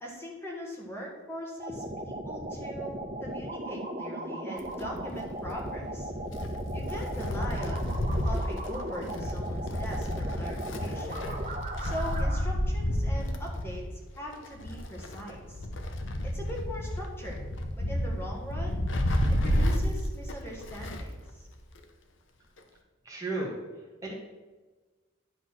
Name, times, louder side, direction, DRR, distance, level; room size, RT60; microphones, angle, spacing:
voice 1, 0.0-6.1 6.7-7.9 8.2-11.3 11.8-13.8 14.2-15.7 16.2-17.4 17.8-18.8 19.3-21.5, equal, 10° left, -2 dB, 1.5 m, -41 dB
sound 1, 1.6-12.4, right 1 dB, 35° right, 1.4 m, -37 dB
Wind, 4.6-21.2 21.5-21.6 22.6-22.7, equal, 70° left, 0.9 m, -31 dB
voice 2, 23.0-23.6 24.0-24.1, right 2 dB, 15° right, -3 dB, 1.4 m, -33 dB
10.5 x 4.1 x 6.1 m, 1.3 s
head